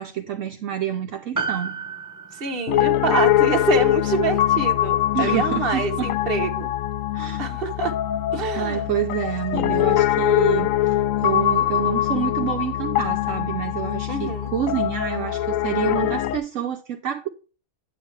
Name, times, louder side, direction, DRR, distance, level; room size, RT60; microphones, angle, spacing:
voice 1, 0.0-1.9 5.1-6.1 7.1-7.6 8.5-17.3, right 10 dB, 65° right, 1.0 m, -28 dB
Piano, 1.3-6.0 6.2-6.3, right 5 dB, 15° right, 0.8 m, -35 dB
voice 2, 2.3-6.7 7.4-8.0 8.3-8.9 14.1-14.5, right 4 dB, 45° right, 1.2 m, -26 dB
Piano 2, 2.7-16.4, left 13 dB, 75° left, 1.0 m, -23 dB
9.2 x 7.4 x 3.2 m
omnidirectional pair, 1.5 m